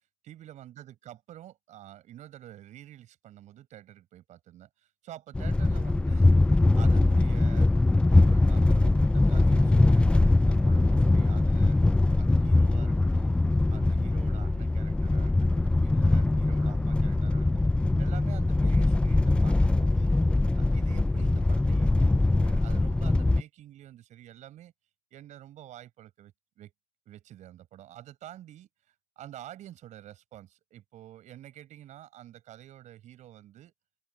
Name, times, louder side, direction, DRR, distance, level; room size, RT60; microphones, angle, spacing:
voice 1, 0.2-6.3 6.7-7.7 8.1-17.6 18.0-20.1 20.5-24.7 25.1-26.7 27.0-33.7, right 12 dB, 60° right, 6.6 m, -48 dB
sound 1, 5.4-23.4, left 2 dB, 5° left, 0.3 m, -22 dB
open air
cardioid pair, 105°, 14 cm